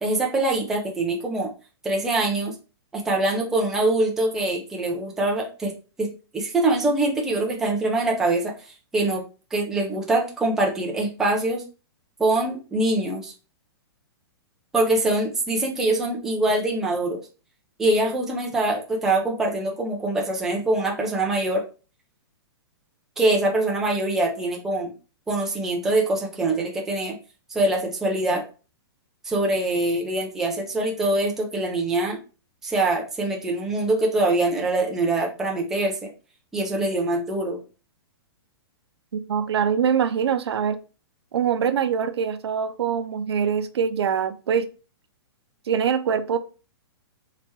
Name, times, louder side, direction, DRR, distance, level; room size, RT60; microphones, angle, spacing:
voice 1, 0.0-1.5 1.8-2.5 2.9-5.7 6.0-8.5 8.9-9.2 9.5-11.6 12.2-13.3 14.7-17.2 17.8-21.6 23.2-24.9 25.3-27.2 27.5-28.4 29.2-32.2 32.6-36.1 36.5-37.6, right 2 dB, 5° right, 0.4 m, -24 dB
voice 2, 39.1-40.8 41.3-44.7 45.7-46.4, right 7 dB, 85° right, 0.5 m, -23 dB
3.3 x 2.8 x 3.1 m
hypercardioid pair, 170°, 13 cm